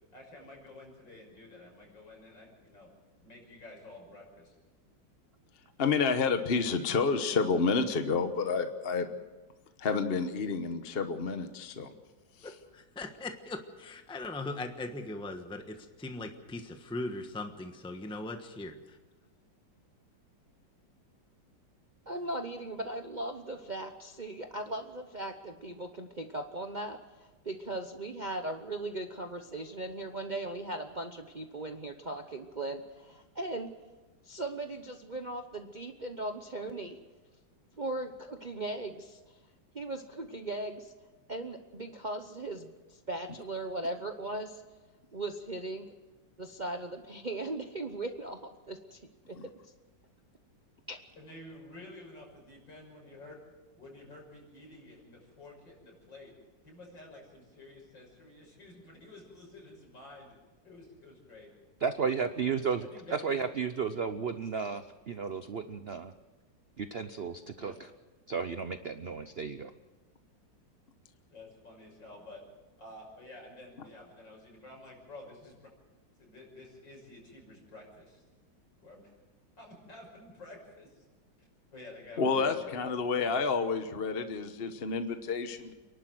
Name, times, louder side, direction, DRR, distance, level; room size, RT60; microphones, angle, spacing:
voice 1, 0.1-2.9 3.2-4.5 51.2-53.3 53.8-56.3 56.6-60.3 60.6-61.5 62.1-62.5 62.8-63.4 67.6-67.7 71.3-72.4 72.8-75.7 76.2-78.2 78.8-79.1 79.6-81.0 81.4-83.3, left 2 dB, 70° left, -1 dB, 6.9 m, -51 dB
voice 2, 5.8-9.1 9.8-11.9 49.4-49.5 82.2-85.7, left 4 dB, 40° left, 8 dB, 1.1 m, -29 dB
voice 3, 12.4-18.8, left 2 dB, 5° left, 6 dB, 1.0 m, -39 dB
voice 4, 22.1-33.7 34.2-37.0 37.8-39.3 39.7-40.9 41.3-44.6 45.1-45.9 46.4-48.4 48.7-49.0 49.3-49.4 50.9-51.0, right 2 dB, 35° right, 5 dB, 0.8 m, -38 dB
voice 5, 61.8-66.1 66.8-67.7 68.3-69.7, right 6 dB, 60° right, 10 dB, 0.6 m, -33 dB
28.5 x 12.0 x 7.8 m, 1.2 s
omnidirectional pair, 2.0 m